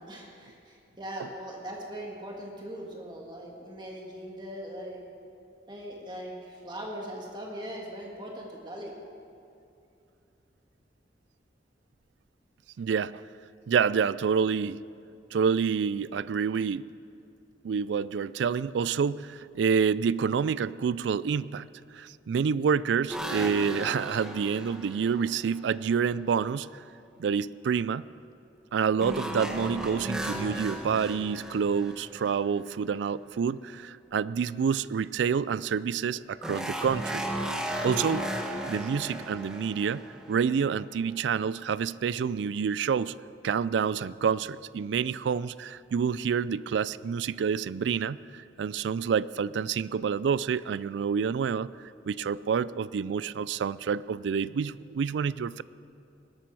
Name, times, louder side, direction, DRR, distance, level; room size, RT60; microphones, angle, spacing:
voice 1, 0.1-5.0 5.7-8.9, equal, 25° right, -1 dB, 1.9 m, -40 dB
voice 2, 12.8-13.2 13.7-14.8 15.3-16.9 17.6-21.7 21.9-26.8 27.2-28.0 28.7-37.2 37.8-38.4 38.7-40.0 40.3-43.1 43.4-51.7 52.1-55.6, right 6 dB, 85° right, 19 dB, 0.3 m, -28 dB
sound 1, 23.1-25.6 29.0-32.8 36.4-40.8, equal, 5° right, 1.2 m, -35 dB
19.0 x 12.5 x 4.7 m, 2.6 s
head